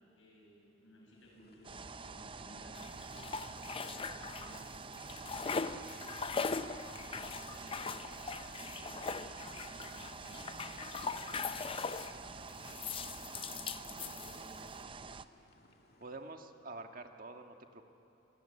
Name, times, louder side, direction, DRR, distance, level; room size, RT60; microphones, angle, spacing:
voice 1, 0.1-3.4 3.8-4.7 5.0-7.9 8.2-10.5 11.7-12.8 13.2-14.9, left 1 dB, 80° left, -1 dB, 7.9 m, -59 dB
sound 1, 1.1-16.3, left 2 dB, 50° left, 2.2 m, -65 dB
sound 2, 1.6-15.2, right 4 dB, 25° right, 0.6 m, -47 dB
sound 3, 2.7-4.7 5.0-12.2 12.6-14.7, left 5 dB, 30° left, 0.5 m, -40 dB
voice 2, 16.0-17.9, right 2 dB, 45° right, 5 dB, 1.6 m, -48 dB
26.5 x 20.5 x 9.8 m, 2.9 s
head